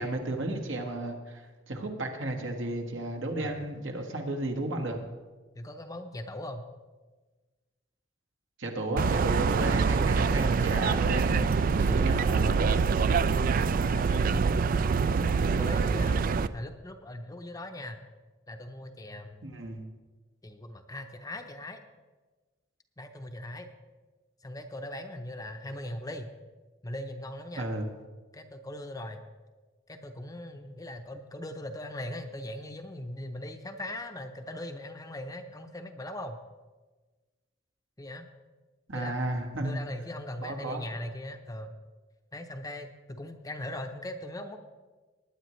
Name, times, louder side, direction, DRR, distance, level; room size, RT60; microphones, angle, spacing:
voice 1, 0.0-1.4 1.7-5.0 8.6-12.7 19.4-19.8 27.6-27.9 38.9-39.8 40.4-40.8, right 2 dB, 75° right, 3 dB, 1.6 m, -33 dB
voice 2, 3.4-3.8 5.6-6.6 8.9-9.2 9.6-9.9 12.1-12.4 13.9-14.4 15.2-16.2 16.5-18.0 18.5-19.4 20.4-21.8 23.0-23.7 24.4-26.3 26.8-27.7 28.3-29.2 29.9-36.4 38.0-38.3 38.9-41.7 42.3-44.6, left 1 dB, 20° left, 6 dB, 0.7 m, -40 dB
sound 1, 9.0-16.5, right 5 dB, 45° right, 0.3 m, -25 dB
20.0 x 9.7 x 3.2 m, 1.3 s
head